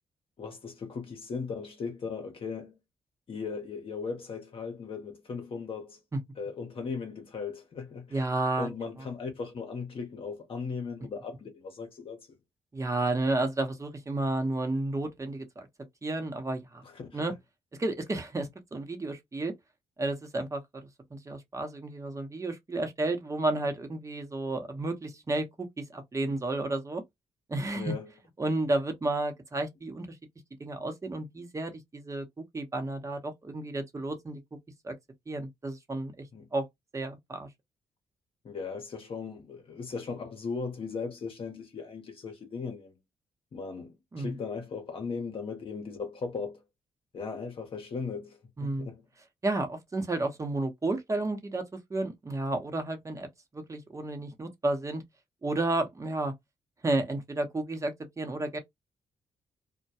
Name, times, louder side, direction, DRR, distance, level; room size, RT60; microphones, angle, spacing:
voice 1, 0.4-2.8 3.3-6.0 6.4-8.2 8.6-12.4 16.8-17.3 27.7-28.1 36.3-36.5 38.4-42.9 43.5-46.6 47.1-49.0, left 5 dB, 55° left, 0.8 m, -37 dB
voice 2, 8.1-8.7 12.7-15.7 16.0-16.8 17.1-17.3 17.8-19.5 20.0-27.0 27.5-27.9 28.4-30.2 30.6-34.4 34.8-35.0 35.3-36.3 36.5-36.7 36.9-37.5 44.1-44.4 48.6-48.9 49.4-51.6 51.9-53.3 53.5-55.0 55.4-56.3 56.8-58.6, right 2 dB, 30° right, 0.9 m, -32 dB
2.2 x 2.2 x 2.7 m
supercardioid pair, 65°, 11 cm